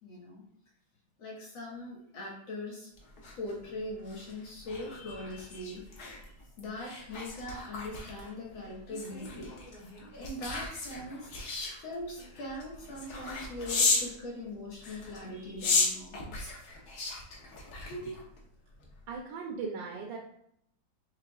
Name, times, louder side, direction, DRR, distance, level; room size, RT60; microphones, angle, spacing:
voice 1, 0.0-0.4 1.2-2.9 3.3-5.9 6.3-9.5 10.1-11.3 11.8-16.5, left 1 dB, 90° left, -3 dB, 2.1 m, -41 dB
sound 1, 3.0-14.1 14.8-18.4 18.8-19.0, left 3 dB, 60° left, 1.3 m, -35 dB
voice 2, 19.1-20.2, right 5 dB, 80° right, 0 dB, 1.3 m, -38 dB
5.7 x 3.3 x 2.3 m, 0.71 s
omnidirectional pair, 2.1 m